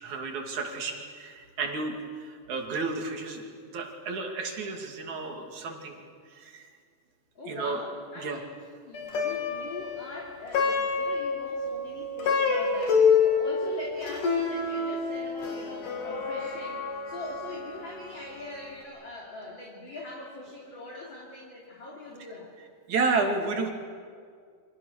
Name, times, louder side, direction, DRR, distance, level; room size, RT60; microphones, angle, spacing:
voice 1, 0.0-3.5 3.7-6.0 6.3-6.7 7.5-7.8 8.2-8.4 22.9-23.7, right 4 dB, 65° right, 2 dB, 4.0 m, -31 dB
voice 2, 7.4-8.5 8.8-22.5, left 2 dB, 35° left, -3 dB, 3.6 m, -42 dB
Plucked string instrument, 8.9-18.4, left 5 dB, 80° left, 4.6 m, -28 dB
30.0 x 25.5 x 6.7 m, 2.1 s
omnidirectional pair, 3.7 m